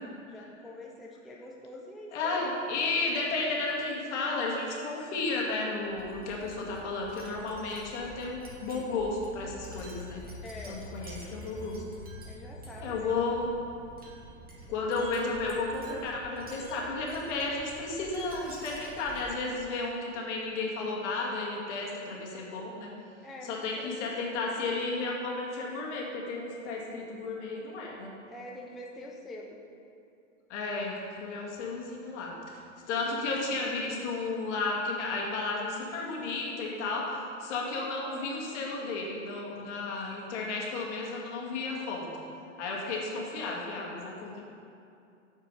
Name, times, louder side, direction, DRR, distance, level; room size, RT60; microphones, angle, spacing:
voice 1, 0.3-2.5 10.4-10.8 12.2-13.1 23.2-24.1 28.3-29.6, left 1 dB, ahead, -2 dB, 0.3 m, -45 dB
voice 2, 2.1-10.2 10.7-11.8 12.8-13.5 14.7-22.9 23.5-28.1 30.5-32.3 32.9-37.1 37.4-42.1 42.6-44.4, left 3 dB, 60° left, -2 dB, 1.9 m, -33 dB
Wind chime, 5.9-19.6, equal, 20° right, 1.8 m, -47 dB
6.6 x 6.2 x 5.3 m, 2.5 s
hypercardioid pair, 105°, 39 cm